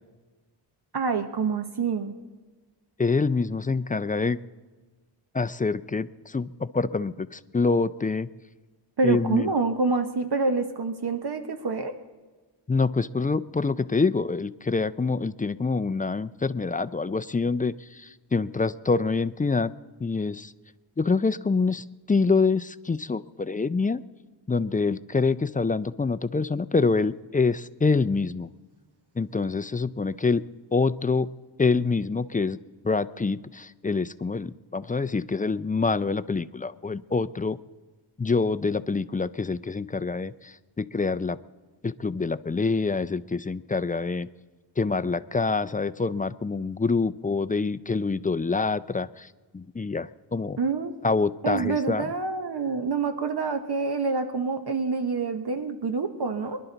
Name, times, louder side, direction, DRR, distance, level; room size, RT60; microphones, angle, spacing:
voice 1, 0.9-2.1 9.0-11.9 50.6-50.9 51.4-56.6, right 4 dB, 60° right, 7 dB, 1.0 m, -27 dB
voice 2, 3.0-4.4 5.3-8.3 9.0-9.5 12.7-19.7 20.0-20.5 21.0-24.0 24.5-28.5 29.2-30.4 30.7-31.3 31.6-32.6 32.8-37.6 38.2-41.4 41.8-44.3 44.8-50.6 51.0-52.1, left 4 dB, 20° left, 13 dB, 0.4 m, -26 dB
24.0 x 11.5 x 4.0 m, 1.3 s
wide cardioid pair, 80°, 44 cm